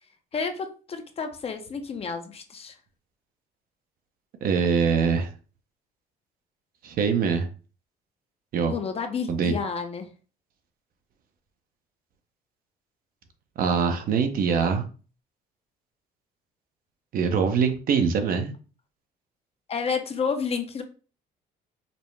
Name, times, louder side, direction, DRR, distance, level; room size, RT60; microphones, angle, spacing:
voice 1, 0.3-2.8 8.7-10.1 19.7-20.8, left 5 dB, 35° left, 7 dB, 0.6 m, -30 dB
voice 2, 4.4-5.3 6.8-7.5 8.5-8.7 9.3-9.5 13.6-14.9 17.1-18.5, right 6 dB, 60° right, 6 dB, 0.7 m, -23 dB
5.2 x 2.1 x 3.2 m, 0.37 s
cardioid pair, 110°, 17 cm